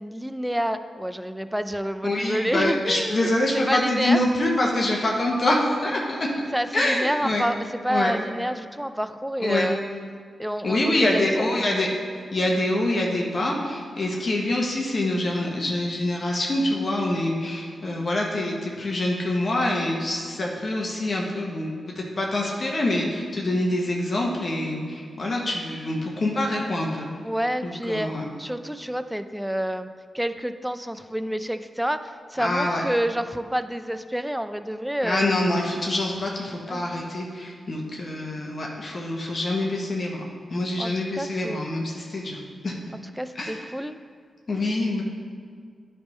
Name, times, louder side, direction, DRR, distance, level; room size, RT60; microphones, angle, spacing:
voice 1, 0.0-4.2 6.5-9.8 10.4-11.5 27.2-28.1 28.4-29.9 30.1-35.3 36.7-37.1 40.8-41.7 43.2-44.0, equal, 5° right, 10 dB, 0.5 m, -28 dB
voice 2, 2.0-6.3 6.7-7.4 7.9-8.1 9.4-9.7 10.6-11.9 12.3-21.7 21.9-27.1 27.6-28.3 32.4-32.8 35.0-40.2 40.5-42.8 43.3-43.6 44.5-45.0, left 1 dB, 55° left, -1 dB, 1.2 m, -25 dB
10.0 x 3.6 x 5.4 m, 2.1 s
supercardioid pair, 45°, 0 cm